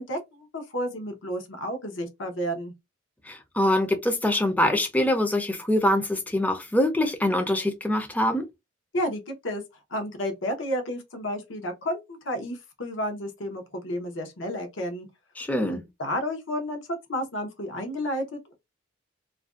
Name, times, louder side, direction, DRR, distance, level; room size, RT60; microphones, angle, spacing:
voice 1, 0.0-2.7 8.9-9.6 9.9-15.1 15.7-18.5, equal, 75° left, 0.7 m, -31 dB
voice 2, 3.3-8.5 15.4-15.8, left 1 dB, 10° left, 0.4 m, -24 dB
2.4 x 2.1 x 2.3 m
head